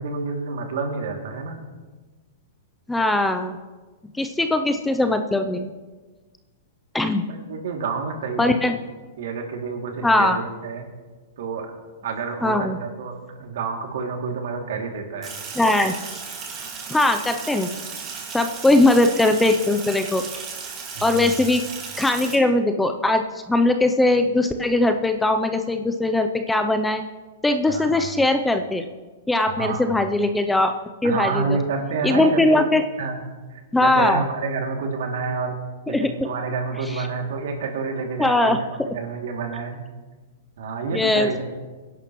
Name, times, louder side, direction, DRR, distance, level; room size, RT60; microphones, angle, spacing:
voice 1, 0.0-1.6 7.3-8.6 9.2-10.8 11.4-11.7 12.0-15.4 20.9-21.4 27.7-28.1 29.6-30.0 31.0-32.6 33.0-33.2 33.5-35.6 35.9-39.8 40.6-41.4, right 4 dB, 70° right, 2 dB, 2.5 m, -29 dB
voice 2, 2.9-3.6 4.2-5.7 6.9-7.3 8.4-8.7 10.0-10.4 12.4-12.8 15.6-15.9 16.9-17.7 18.3-20.2 21.0-21.6 22.0-27.0 27.4-28.9 29.3-30.7 31.0-31.6 32.0-32.8 33.7-34.2 35.9-36.3 36.9-37.0 38.2-38.6 40.9-41.4, left 2 dB, 5° left, 7 dB, 0.5 m, -20 dB
Sink (filling or washing), 15.2-22.4, right 5 dB, 25° right, 2.0 m, -35 dB
23.0 x 11.0 x 3.1 m, 1.3 s
hypercardioid pair, 155°, 0 cm